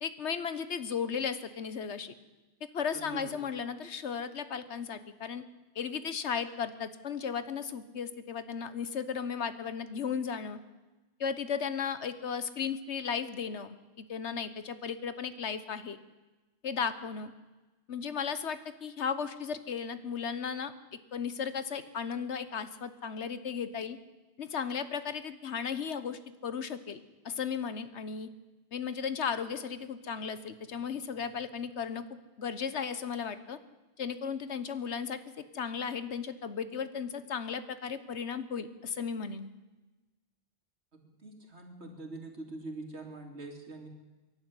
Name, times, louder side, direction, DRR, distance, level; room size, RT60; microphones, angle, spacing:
voice 1, 0.0-2.1 2.7-5.4 5.7-10.6 11.2-16.0 16.6-17.3 17.9-20.7 21.1-24.0 24.4-27.0 27.2-28.3 28.7-32.0 32.4-33.6 34.0-35.2 35.5-39.5, left 6 dB, 85° left, 13 dB, 1.4 m, -35 dB
voice 2, 2.9-3.5 40.9-43.9, right 2 dB, 75° right, 3 dB, 3.2 m, -44 dB
23.0 x 11.5 x 9.8 m, 1.2 s
omnidirectional pair, 1.1 m